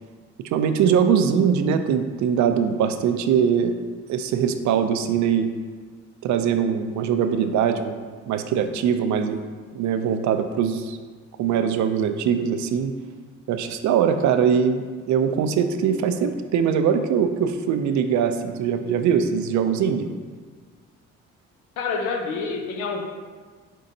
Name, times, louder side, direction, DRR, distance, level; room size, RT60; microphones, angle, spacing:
voice 1, 0.5-3.7 4.1-5.5 6.2-9.4 9.7-11.0 11.4-12.9 13.5-20.1, right 7 dB, 70° right, 8 dB, 0.4 m, -22 dB
voice 2, 21.8-23.1, left 4 dB, 85° left, 3 dB, 0.7 m, -27 dB
5.3 x 3.8 x 2.7 m, 1.5 s
cardioid pair, 90°, 30 cm